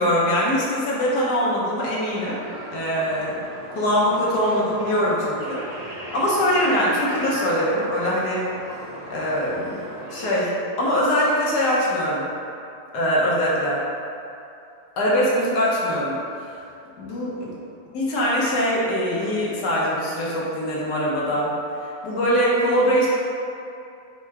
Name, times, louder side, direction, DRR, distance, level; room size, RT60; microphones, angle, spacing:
voice 1, 0.0-2.4 2.7-3.3 3.7-8.5 9.1-9.8 10.1-10.5 10.8-12.3 12.9-13.8 15.0-16.6 17.0-17.3 17.9-21.5 22.0-23.1, equal, 70° left, -6 dB, 1.4 m, -22 dB
sound 1, 2.1-10.2, right 1 dB, 30° right, 0.8 m, -37 dB
4.7 x 2.1 x 4.5 m, 2.6 s
omnidirectional pair, 1.9 m